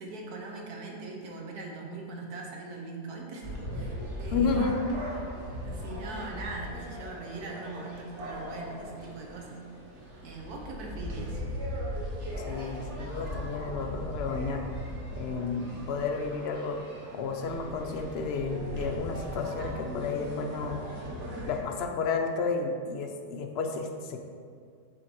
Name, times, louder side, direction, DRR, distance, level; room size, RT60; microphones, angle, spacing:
voice 1, 0.0-4.7 5.6-9.6 10.2-11.4, right 3 dB, 70° right, 0 dB, 1.5 m, -41 dB
sound 1, 3.4-21.6, equal, 50° right, 1.3 m, -38 dB
voice 2, 4.3-4.8 12.4-14.6 15.2-16.8 17.1-20.8 21.4-24.2, left 4 dB, 60° left, 4 dB, 0.6 m, -31 dB
7.5 x 3.8 x 4.5 m, 2.1 s
omnidirectional pair, 1.7 m